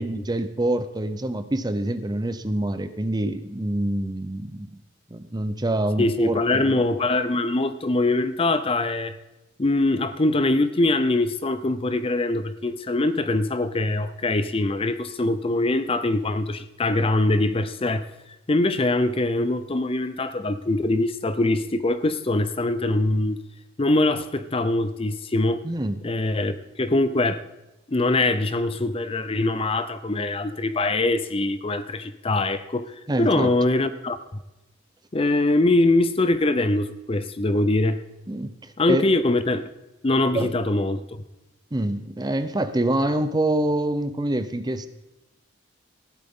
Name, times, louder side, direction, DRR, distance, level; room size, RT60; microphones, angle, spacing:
voice 1, 0.0-4.8 5.1-6.6 25.6-26.0 33.1-33.5 38.3-39.0 40.3-40.6 41.7-44.9, right 1 dB, 20° right, 11 dB, 0.6 m, -26 dB
voice 2, 6.0-9.2 9.6-18.1 18.5-23.4 23.8-25.6 26.0-27.4 27.9-34.2 35.1-38.0 38.8-39.7 40.0-41.0, left 2 dB, 30° left, 12 dB, 0.6 m, -23 dB
15.5 x 11.5 x 3.7 m, 0.98 s
head